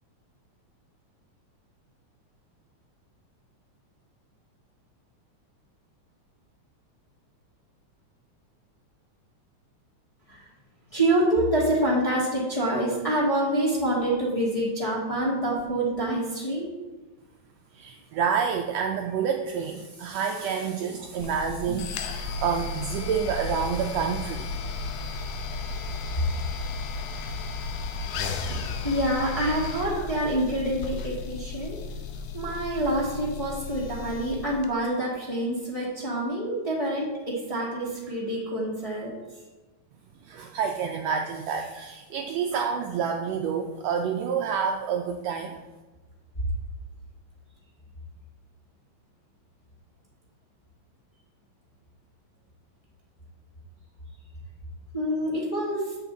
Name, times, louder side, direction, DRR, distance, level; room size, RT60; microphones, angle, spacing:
voice 1, 10.9-16.7 28.5-31.8 32.3-39.1 54.9-55.9, right 1 dB, 15° left, -6 dB, 1.5 m, -26 dB
voice 2, 17.7-24.5 40.2-45.6, right 7 dB, 75° right, 3 dB, 1.6 m, -28 dB
sound 1, 21.2-34.7, left 4 dB, 85° left, 2.2 m, -34 dB
8.3 x 7.2 x 4.0 m, 1.2 s
omnidirectional pair, 3.4 m